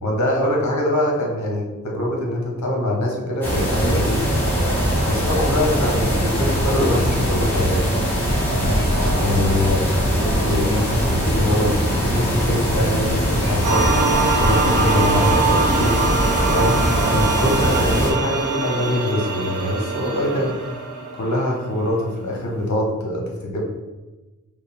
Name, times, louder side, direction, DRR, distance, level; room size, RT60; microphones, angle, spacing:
voice 1, 0.0-4.3 5.0-7.9 8.6-8.9 9.2-13.9 14.4-15.9 16.5-16.8 17.1-20.6 21.1-23.6, left 1 dB, 60° left, -1 dB, 1.1 m, -23 dB
sound 1, 3.4-18.1, equal, 5° left, 1.2 m, -21 dB
sound 2, 13.6-22.0, right 4 dB, 65° right, 0.8 m, -23 dB
4.8 x 2.3 x 3.4 m, 1.2 s
wide cardioid pair, 120°, 32 cm